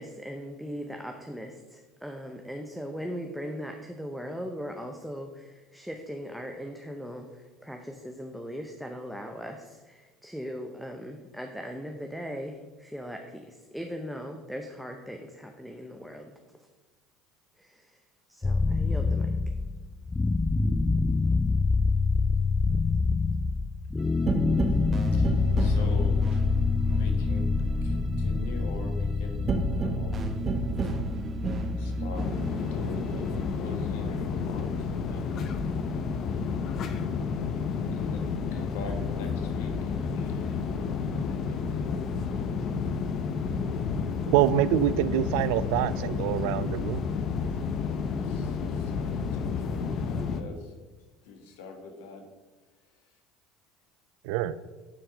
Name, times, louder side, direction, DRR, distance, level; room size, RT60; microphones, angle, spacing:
voice 1, 0.0-16.4 17.6-18.0 18.3-19.3, equal, ahead, 3 dB, 0.8 m, -39 dB
sound 1, 18.4-32.5, left 4 dB, 20° left, 0.3 m, -26 dB
sound 2, 24.0-37.0 37.3-39.2 39.5-41.2 41.6-43.4, right 3 dB, 35° right, 1.1 m, -35 dB
voice 2, 25.1-26.4 26.9-27.5 27.8-30.3 31.8-35.4 37.9-41.9 48.2-50.7 51.2-52.3, left 4 dB, 75° left, 4 dB, 1.3 m, -44 dB
sound 3, 32.2-50.4, left 5 dB, 50° left, 0.7 m, -31 dB
voice 3, 44.3-47.1 54.2-54.6, right 12 dB, 70° right, 16 dB, 0.4 m, -25 dB
9.0 x 4.6 x 5.1 m, 1.3 s
hypercardioid pair, 80°, 0 cm